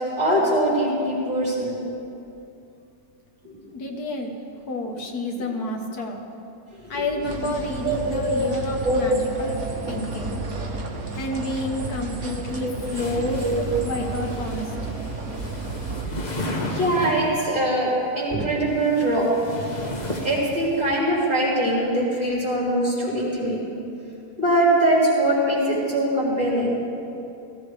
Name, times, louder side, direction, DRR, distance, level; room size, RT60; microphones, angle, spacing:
voice 1, 0.0-1.8 3.4-3.5 6.8-7.0 7.8-8.5 8.8-9.0 9.4-9.5 10.3-10.7 12.6-12.7 13.4-13.6 16.7-17.9 18.1-19.3 20.2-23.6 24.4-26.8, right 1 dB, 30° right, -9 dB, 4.6 m, -22 dB
voice 2, 3.7-4.4 4.7-6.2 6.9-9.6 9.9-10.4 11.1-15.0, left 2 dB, 85° left, 2 dB, 1.8 m, -29 dB
sound 1, 7.2-16.1, right 3 dB, 65° right, 1.7 m, -32 dB
sound 2, 12.8-17.5 18.5-21.0, left 1 dB, 30° left, 1.4 m, -33 dB
18.5 x 15.5 x 3.4 m, 2.6 s
omnidirectional pair, 1.6 m